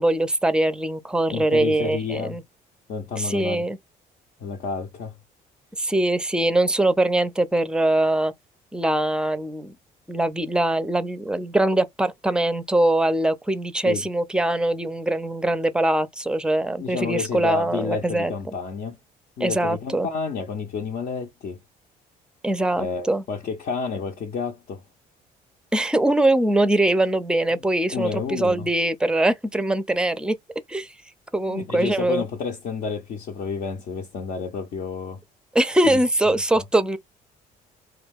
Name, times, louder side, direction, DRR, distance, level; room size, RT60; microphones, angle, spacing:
voice 1, 0.0-2.4 3.2-3.8 5.8-8.3 8.7-9.7 10.1-18.3 19.4-20.1 22.4-23.2 25.7-30.4 30.7-30.9 31.3-32.2 35.5-37.0, right 1 dB, 5° right, 0.5 m, -22 dB
voice 2, 1.3-2.4 2.9-3.6 4.4-5.1 13.8-14.1 16.8-19.0 19.4-21.6 22.7-24.8 27.5-27.6 27.9-28.7 31.5-35.2 35.8-36.0 36.5-36.6, left 5 dB, 60° left, 0.7 m, -30 dB
2.3 x 2.3 x 3.4 m
supercardioid pair, 75°, 17 cm